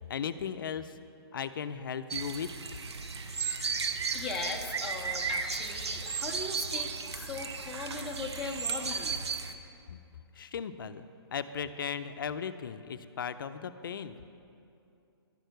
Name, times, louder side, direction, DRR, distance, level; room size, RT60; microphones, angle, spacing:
voice 1, 0.1-1.0 1.3-2.8 9.9-10.0 10.4-14.2, left 7 dB, 55° left, 11 dB, 0.5 m, -37 dB
sound 1, 2.1-9.5, right 5 dB, 80° right, 0.9 m, -35 dB
voice 2, 4.1-9.2, left 3 dB, ahead, -4 dB, 0.5 m, -39 dB
12.0 x 6.5 x 7.9 m, 2.6 s
hypercardioid pair, 165°, 14 cm